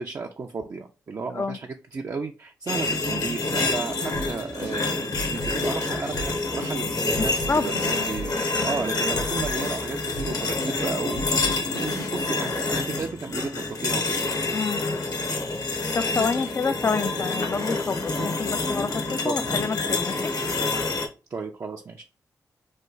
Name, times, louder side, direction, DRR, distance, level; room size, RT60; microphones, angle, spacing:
voice 1, 0.0-14.2 16.1-16.5 19.2-19.6 21.3-22.0, right 4 dB, 45° right, 0.5 m, -34 dB
sound 1, 2.7-21.1, left 3 dB, 55° left, 0.9 m, -27 dB
sound 2, 4.1-12.1, equal, 80° left, 1.2 m, -37 dB
voice 2, 7.2-7.7 14.5-14.8 15.9-20.3, left 4 dB, 35° left, 0.4 m, -28 dB
3.2 x 2.2 x 3.9 m
supercardioid pair, 45°, 7 cm